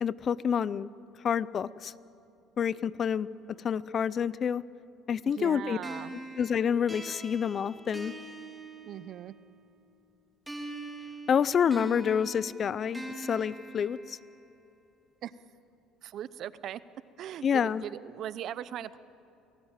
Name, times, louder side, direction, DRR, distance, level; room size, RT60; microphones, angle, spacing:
voice 1, 0.0-0.9 1.2-1.9 2.6-3.3 3.6-4.6 5.1-5.8 6.4-8.1 11.3-14.2 17.4-17.8, left 7 dB, 35° left, 18 dB, 0.5 m, -28 dB
voice 2, 5.2-6.2 8.8-9.3 15.2-15.3 16.0-16.8 17.2-19.0, right 10 dB, 55° right, 16 dB, 0.8 m, -39 dB
sound 1, 5.8-9.5 10.5-14.5, right 2 dB, 5° right, 3.2 m, -43 dB
29.5 x 18.0 x 9.0 m, 2.8 s
cardioid pair, 130°, 0 cm